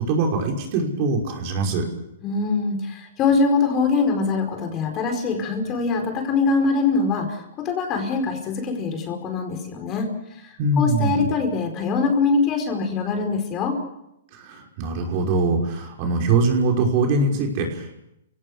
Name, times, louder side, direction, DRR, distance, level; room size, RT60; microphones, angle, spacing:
voice 1, 0.0-1.9 10.6-11.3 14.3-18.0, right 3 dB, 45° right, 1 dB, 5.6 m, -22 dB
voice 2, 2.2-10.1 10.4-10.5 10.8-13.8, left 4 dB, 30° left, 4 dB, 4.9 m, -23 dB
30.0 x 17.5 x 6.5 m, 0.83 s
hypercardioid pair, 140°, 0 cm